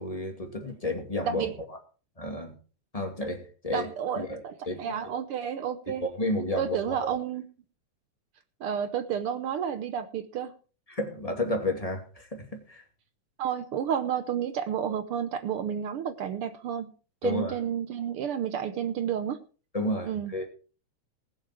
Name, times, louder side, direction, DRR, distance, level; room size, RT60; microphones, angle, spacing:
voice 1, 0.0-1.8 2.2-2.5 2.9-3.9 4.2-5.0 6.0-7.0 10.9-12.8 17.2-17.5 19.7-20.5, left 1 dB, 15° left, 2.1 m, -32 dB
voice 2, 3.7-6.0 6.6-7.4 8.6-10.5 13.4-16.9 17.2-19.4 20.0-20.3, right 8 dB, 70° right, 1.4 m, -31 dB
19.5 x 7.5 x 4.5 m
omnidirectional pair, 3.3 m